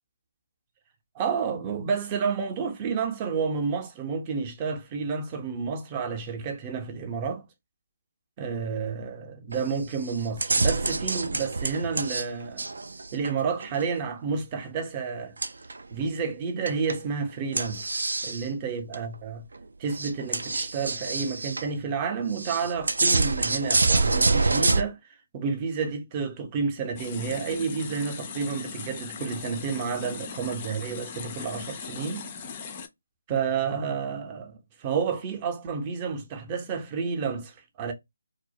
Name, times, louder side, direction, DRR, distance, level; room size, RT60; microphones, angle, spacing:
voice 1, 1.1-7.4 8.4-12.7 13.1-15.4 15.9-17.9 18.2-19.4 19.8-25.0 25.3-32.3 33.3-37.9, right 5 dB, 25° right, 0.6 m, -30 dB
sound 1, 9.5-9.8 10.1-12.3 12.6-13.9 15.4-15.9 16.7-17.0 17.5-18.5 18.9-19.0 19.6-19.7 19.9-21.7 22.4-24.8, right 3 dB, 70° right, 0.3 m, -26 dB
sound 2, 27.0-32.9, left 5 dB, 25° left, 0.4 m, -39 dB
2.2 x 2.0 x 2.8 m
figure-of-eight pair, 155°, 0 cm